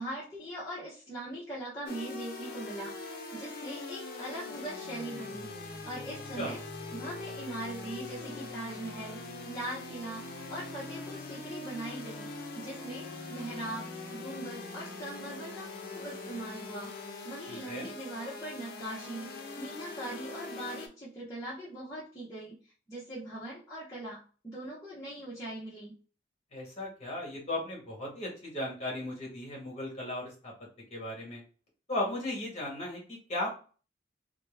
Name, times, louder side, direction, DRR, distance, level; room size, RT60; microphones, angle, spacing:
voice 1, 0.0-5.5 5.8-6.6 6.9-12.3 12.5-26.0, right 1 dB, 15° left, -9 dB, 0.8 m, -41 dB
sound 1, 1.9-20.9, left 3 dB, 50° left, 0.5 m, -42 dB
voice 2, 17.5-17.9 26.5-30.5 30.9-31.4 31.9-33.5, left 1 dB, 35° left, -2 dB, 1.3 m, -36 dB
2.9 x 2.1 x 3.3 m, 0.38 s
head